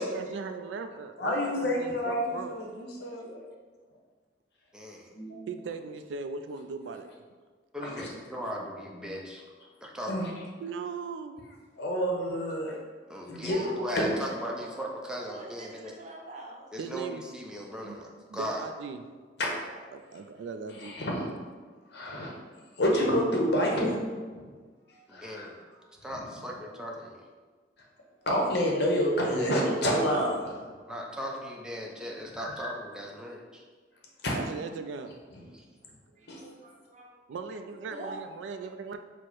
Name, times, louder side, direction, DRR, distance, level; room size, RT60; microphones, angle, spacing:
voice 1, 0.0-2.6 5.5-7.1 10.6-11.4 16.8-17.2 17.8-18.0 18.3-19.0 19.9-21.0 34.3-35.1 37.3-39.0, right 5 dB, 90° right, 8 dB, 0.3 m, -38 dB
voice 2, 1.2-3.4 5.1-5.5 7.8-8.1 10.1-10.3 11.8-12.8 13.3-13.6 13.9-14.1 19.4-19.5 20.8-21.4 21.9-22.3 22.8-24.0 24.4-24.5 24.9-25.5 26.1-26.2 28.2-30.7 32.3-32.7 34.2-34.3 36.3-36.4, equal, 65° left, -1 dB, 0.9 m, -28 dB
voice 3, 4.7-5.1 7.7-9.4 9.8-10.3 13.1-15.9 16.7-18.6 25.1-25.6 26.0-27.2 30.9-33.6 35.5-35.6, equal, 5° right, -1 dB, 0.5 m, -38 dB
voice 4, 13.4-14.7 15.3-16.7 33.9-34.0 36.2-37.2 37.5-37.6 37.9-38.2 38.5-38.7, right 2 dB, 40° right, -1 dB, 0.7 m, -44 dB
4.5 x 2.0 x 4.5 m, 1.5 s
head